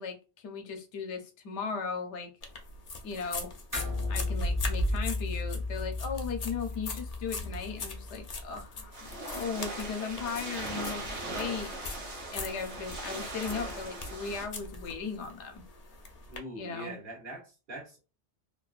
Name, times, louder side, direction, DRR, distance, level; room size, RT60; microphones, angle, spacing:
voice 1, 0.0-2.3 3.0-3.5 4.1-11.7 12.3-15.6 16.5-17.0, left 5 dB, 85° left, 0.9 m, -37 dB
sound 1, 2.4-16.4, left 1 dB, 50° left, 0.5 m, -40 dB
sound 2, 3.7-8.5, left 3 dB, 20° right, 0.6 m, -35 dB
sound 3, 8.9-14.5, right 2 dB, 85° right, 1.2 m, -39 dB
voice 2, 16.3-18.0, right 1 dB, 50° right, 1.1 m, -43 dB
2.7 x 2.2 x 2.3 m
omnidirectional pair, 1.1 m